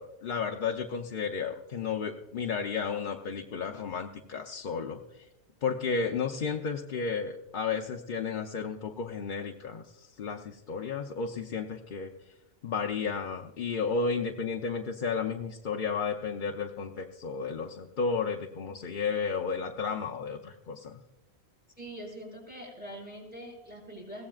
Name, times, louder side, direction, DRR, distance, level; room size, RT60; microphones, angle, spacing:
voice 1, 0.0-5.3 5.6-12.1 12.6-21.0, left 5 dB, 55° left, 3 dB, 0.8 m, -33 dB
voice 2, 21.8-24.3, equal, 10° right, -3 dB, 4.8 m, -43 dB
22.0 x 16.5 x 2.4 m, 1.0 s
omnidirectional pair, 1.1 m